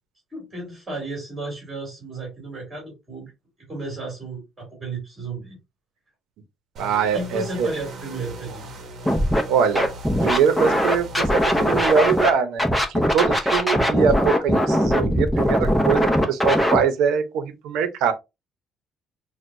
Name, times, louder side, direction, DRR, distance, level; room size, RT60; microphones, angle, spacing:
voice 1, 0.3-3.3 3.6-5.6 7.1-8.6, right 3 dB, 10° right, 2.6 m, -33 dB
sound 1, 6.8-12.3, right 1 dB, 50° right, 1.0 m, -38 dB
voice 2, 6.8-7.7 9.5-9.9 10.2-18.1, right 6 dB, 90° right, 0.8 m, -23 dB
Scratching (performance technique), 9.0-9.4 9.7-12.3 12.6-16.8, equal, 5° left, 0.7 m, -20 dB
6.1 x 2.2 x 2.6 m
cardioid pair, 155°, 0 cm